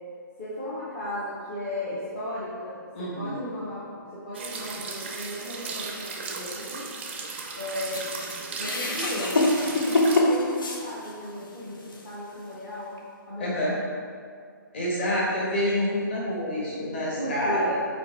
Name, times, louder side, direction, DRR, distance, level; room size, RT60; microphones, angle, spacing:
voice 1, 0.4-6.8 7.6-8.0 8.6-9.4 9.8-13.0 13.3-13.7 17.2-17.7, left 1 dB, 15° left, -10 dB, 0.7 m, -35 dB
voice 2, 2.9-3.4 13.4-13.8 14.7-17.8, equal, 30° left, -5 dB, 1.4 m, -27 dB
sound 1, 4.3-10.2, right 4 dB, 30° right, 0.5 m, -36 dB
sound 2, 7.9-11.4 11.9-12.0 13.0-13.1, left 1 dB, 75° left, 0.9 m, -25 dB
5.2 x 4.2 x 4.4 m, 2.1 s
hypercardioid pair, 175°, 11 cm